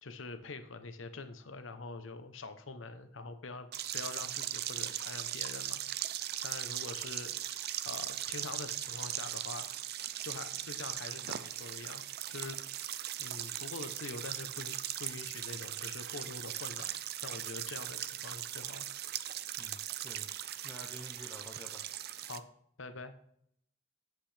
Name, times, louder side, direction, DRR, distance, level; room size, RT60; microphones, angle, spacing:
voice 1, 0.0-3.7 3.9-5.8 6.4-7.3 7.9-9.7 10.2-16.9 17.2-18.9 22.2-22.4 22.8-23.1, left 3 dB, 80° left, 9 dB, 0.9 m, -45 dB
sound 1, 3.7-22.4, right 12 dB, 55° right, 0.5 m, -39 dB
voice 2, 19.6-20.3 20.6-21.8, equal, 10° left, -1 dB, 1.1 m, -49 dB
8.9 x 7.7 x 3.4 m, 0.70 s
head